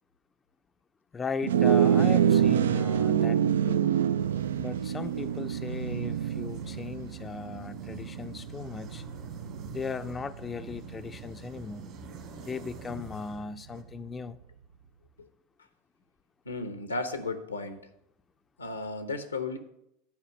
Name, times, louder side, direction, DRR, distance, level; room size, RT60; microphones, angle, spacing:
voice 1, 1.1-3.9 4.6-9.0 9.7-11.9 12.4-14.4, left 5 dB, 20° left, 10 dB, 0.4 m, -37 dB
sound 1, 1.4-11.0, right 9 dB, 75° right, 0.3 m, -27 dB
sound 2, 4.2-13.8, right 4 dB, 50° right, 1.6 m, -46 dB
voice 2, 16.5-17.8 18.6-19.6, left 3 dB, 90° left, 10 dB, 0.9 m, -34 dB
10.5 x 4.8 x 6.3 m, 0.80 s
hypercardioid pair, 85°, 0 cm